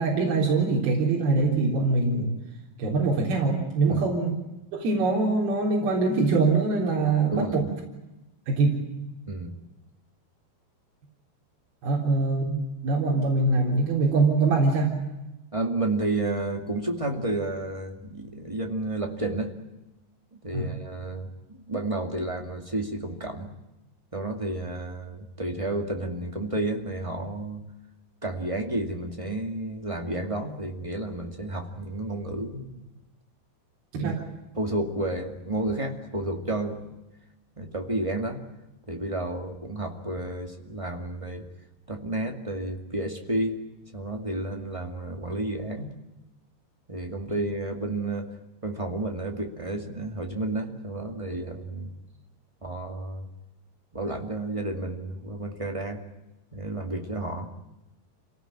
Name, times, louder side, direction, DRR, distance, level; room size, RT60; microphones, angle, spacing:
voice 1, 0.0-2.3 2.8-4.4 4.7-7.6 8.5-8.8 11.8-15.0 20.5-20.7 33.9-34.2, right 3 dB, 65° right, -3 dB, 5.6 m, -23 dB
voice 2, 9.3-9.6 15.5-19.5 20.3-23.5 24.1-27.6 28.2-32.8 33.9-34.1 34.5-37.0 37.6-38.4 38.9-41.4 41.9-43.6 43.9-45.9 46.9-48.3 48.6-51.9 52.6-53.3 53.9-56.0 56.5-57.5, right 2 dB, 20° right, 3 dB, 0.8 m, -31 dB
27.5 x 18.5 x 8.9 m, 0.99 s
omnidirectional pair, 4.9 m